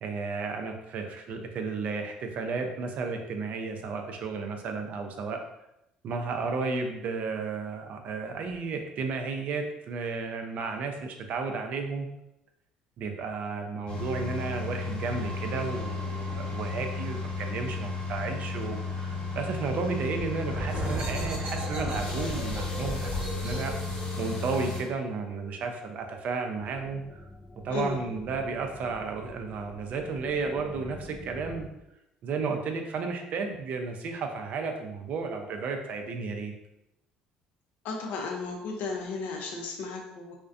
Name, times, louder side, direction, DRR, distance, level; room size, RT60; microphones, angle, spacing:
voice 1, 0.0-5.4 6.0-12.1 13.0-23.7 24.2-27.2 27.6-31.7 32.2-36.5, right 4 dB, 60° right, 4 dB, 0.4 m, -33 dB
sound 1, 13.9-24.8, left 3 dB, 45° left, 1.0 m, -33 dB
sound 2, 20.5-25.9, right 2 dB, 40° right, 0.9 m, -37 dB
sound 3, 26.6-31.7, left 1 dB, 10° left, 0.4 m, -46 dB
voice 2, 27.7-28.0 37.8-40.3, left 4 dB, 65° left, 1 dB, 0.4 m, -34 dB
2.4 x 2.1 x 2.4 m, 0.87 s
supercardioid pair, 75°, 3 cm